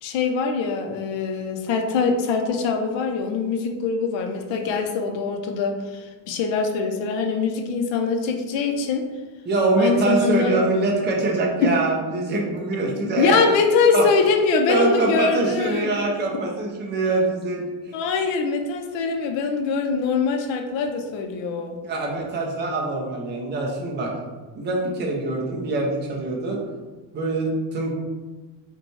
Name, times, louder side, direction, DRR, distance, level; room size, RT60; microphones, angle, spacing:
voice 1, 0.0-9.1 9.8-10.6 11.6-11.7 13.2-16.1 17.9-21.8, left 5 dB, 65° left, 5 dB, 0.6 m, -23 dB
voice 2, 9.5-13.4 13.9-14.0 14.7-17.9 21.8-24.1 24.6-26.6 27.1-27.9, right 2 dB, 25° right, -1 dB, 0.5 m, -24 dB
5.1 x 2.2 x 3.1 m, 1.3 s
cardioid pair, 180°, 49 cm